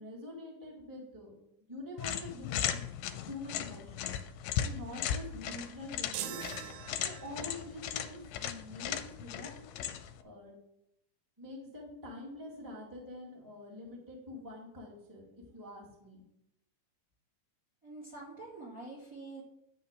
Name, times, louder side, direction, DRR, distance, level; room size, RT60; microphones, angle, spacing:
voice 1, 0.0-1.3 1.6-2.9 3.3-4.1 4.6-6.4 7.0-9.9 10.2-10.5 11.4-16.2, left 2 dB, 5° right, -3 dB, 1.8 m, -46 dB
sound 1, 2.0-10.2, left 10 dB, 85° left, 2.3 m, -37 dB
sound 2, 6.1-7.6, right 10 dB, 75° right, 1.9 m, -42 dB
voice 2, 17.8-19.4, right 2 dB, 30° right, -3 dB, 2.3 m, -46 dB
11.0 x 4.4 x 7.4 m, 0.79 s
omnidirectional pair, 4.0 m